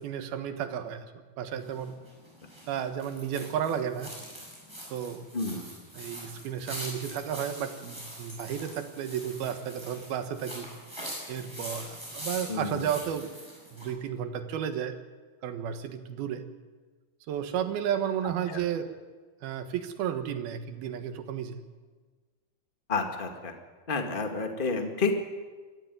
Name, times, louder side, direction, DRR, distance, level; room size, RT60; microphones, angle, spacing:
voice 1, 0.0-2.0 2.7-4.1 4.9-5.2 5.9-10.7 11.3-13.3 13.7-15.0 15.4-16.4 17.3-18.9 19.4-21.6, right 9 dB, 75° right, 8 dB, 3.3 m, -33 dB
sound 1, 1.6-13.9, equal, 5° right, 7.7 m, -43 dB
voice 2, 12.5-12.9 18.5-18.6 22.9-23.5 23.9-25.1, left 4 dB, 25° left, 4 dB, 1.3 m, -30 dB
24.0 x 14.5 x 9.4 m, 1.4 s
omnidirectional pair, 4.4 m